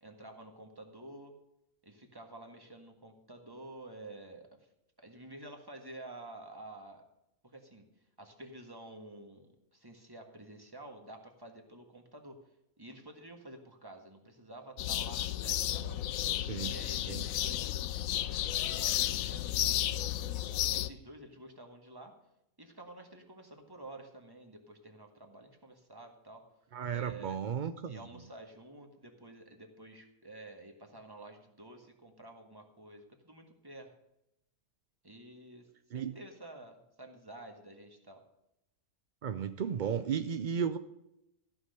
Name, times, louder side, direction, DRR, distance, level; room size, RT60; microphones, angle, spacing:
voice 1, 0.0-1.3 1.8-4.7 5.0-7.0 7.4-7.9 8.2-12.4 12.8-16.0 16.6-20.4 20.7-22.1 22.6-26.4 26.9-27.4 27.8-33.9 35.0-35.7 35.9-38.2, right 1 dB, 15° right, 3 dB, 1.6 m, -50 dB
sound 1, 14.8-20.9, left 12 dB, 75° left, 1.0 m, -32 dB
voice 2, 26.7-28.0 35.9-36.1 39.2-40.8, right 7 dB, 70° right, 10 dB, 0.4 m, -34 dB
14.0 x 6.1 x 6.7 m, 0.85 s
omnidirectional pair, 1.5 m